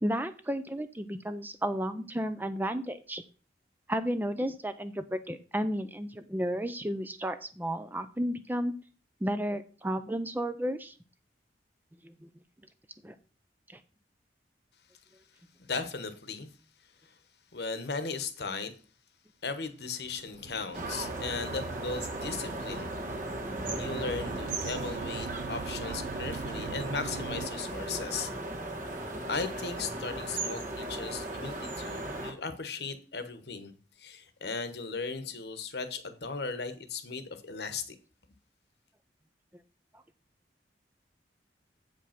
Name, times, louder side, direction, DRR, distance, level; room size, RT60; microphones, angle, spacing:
voice 1, 0.0-3.2 3.9-8.7 9.2-10.9 12.0-12.1 13.0-13.1 30.1-30.2, equal, 10° right, 0.5 m, -32 dB
voice 2, 15.6-16.5 17.5-18.7 19.4-22.9 23.8-28.3 29.3-33.7 34.0-37.9, left 4 dB, 65° left, 1.1 m, -37 dB
sound 1, 20.0-27.5, right 5 dB, 70° right, 0.3 m, -42 dB
sound 2, 20.7-32.3, right 2 dB, 50° right, 1.5 m, -37 dB
7.9 x 5.3 x 5.8 m
head